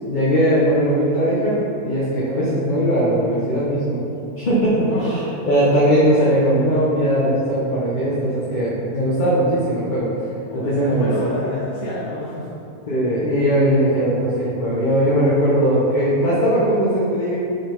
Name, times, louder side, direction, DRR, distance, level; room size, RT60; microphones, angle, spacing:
voice 1, 0.0-4.0 4.4-10.1 10.5-11.1 12.9-17.3, equal, 35° left, -7 dB, 0.9 m, -19 dB
voice 2, 4.9-5.2 5.5-5.7 10.5-12.5, left 1 dB, 55° left, -6 dB, 1.2 m, -28 dB
5.4 x 4.0 x 5.2 m, 2.7 s
omnidirectional pair, 1.6 m